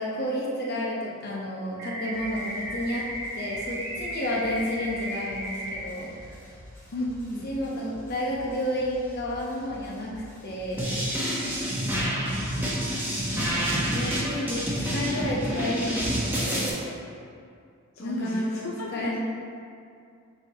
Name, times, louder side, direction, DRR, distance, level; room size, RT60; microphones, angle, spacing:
voice 1, 0.0-3.1 3.3-6.4 7.4-10.1 10.4-10.9 13.2-14.6 14.9-16.9 18.0-18.6 18.9-19.2, left 1 dB, 50° left, -4 dB, 1.1 m, -31 dB
sound 1, 1.8-5.8, right 1 dB, 55° right, 1.0 m, -35 dB
sound 2, 2.1-16.2, left 1 dB, 10° left, 1.4 m, -48 dB
voice 2, 6.9-7.5 11.9-13.2 17.9-19.2, left 2 dB, 65° left, -2 dB, 0.5 m, -35 dB
sound 3, 10.8-16.7, equal, 10° right, 1.0 m, -28 dB
8.5 x 3.9 x 3.0 m, 2.4 s
head